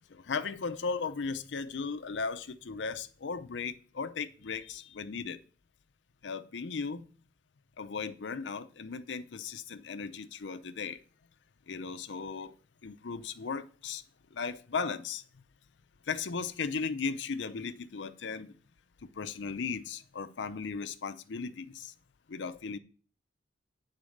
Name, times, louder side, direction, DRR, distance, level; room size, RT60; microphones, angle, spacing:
voice 1, 0.1-5.4 6.2-7.1 7.8-11.0 11.7-12.6 12.8-14.0 14.3-15.2 16.1-18.5 19.2-21.9 22.3-22.8, left 5 dB, 75° left, 0.6 m, -36 dB
8.4 x 4.1 x 6.4 m
head